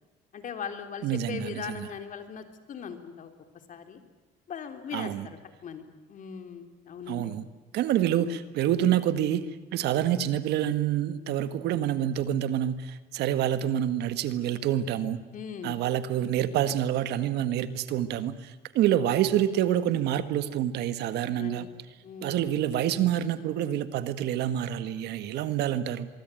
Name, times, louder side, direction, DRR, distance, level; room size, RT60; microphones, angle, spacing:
voice 1, 0.3-3.3 3.7-4.0 4.5-7.3 15.3-15.8 21.2-21.7 22.0-22.4, left 7 dB, 50° left, 7 dB, 3.4 m, -39 dB
voice 2, 1.0-1.9 4.9-5.3 7.1-7.4 7.7-15.2 15.6-21.7 22.2-26.1, right 11 dB, 80° right, 12 dB, 1.7 m, -27 dB
24.0 x 23.5 x 9.1 m, 1.2 s
cardioid pair, 110°, 17 cm